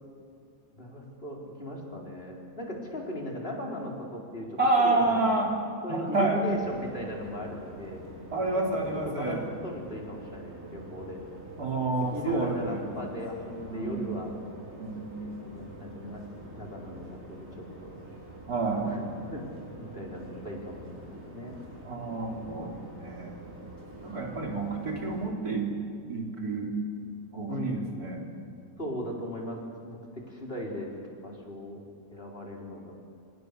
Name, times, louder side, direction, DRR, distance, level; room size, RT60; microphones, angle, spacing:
voice 1, 0.7-5.5 5.8-8.0 8.5-8.7 9.0-11.2 12.1-14.3 15.2-16.2 16.5-17.9 18.8-19.4 19.7-21.6 27.5-27.9 28.8-29.6 29.8-30.9 31.2-31.8 32.1-32.9, left 1 dB, 40° left, -1 dB, 4.7 m, -37 dB
voice 2, 4.6-5.5 5.9-6.4 8.3-9.4 11.6-12.9 13.7-14.1 14.8-15.2 18.5-18.9 21.8-23.3 24.0-25.7 26.1-26.7 27.3-28.2, right 2 dB, 80° right, 0 dB, 4.1 m, -29 dB
sound 1, 6.5-25.3, right 1 dB, 55° right, 6.4 m, -46 dB
28.0 x 27.5 x 6.8 m, 2.4 s
omnidirectional pair, 1.6 m